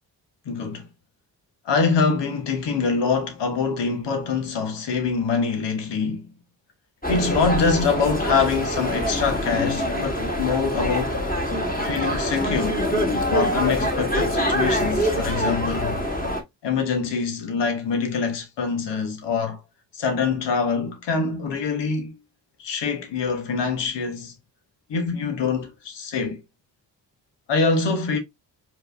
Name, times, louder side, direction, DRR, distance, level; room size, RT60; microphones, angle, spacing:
voice 1, 0.4-0.9 1.6-6.3 7.1-11.2 11.8-12.9 13.3-16.0 16.6-19.6 19.9-22.1 22.6-24.3 24.9-26.4 27.5-28.2, left 5 dB, 75° left, 1.3 m, -24 dB
sound 1, 7.0-16.4, equal, 20° left, 2.1 m, -24 dB
4.7 x 3.2 x 2.6 m
supercardioid pair, 40°, 43 cm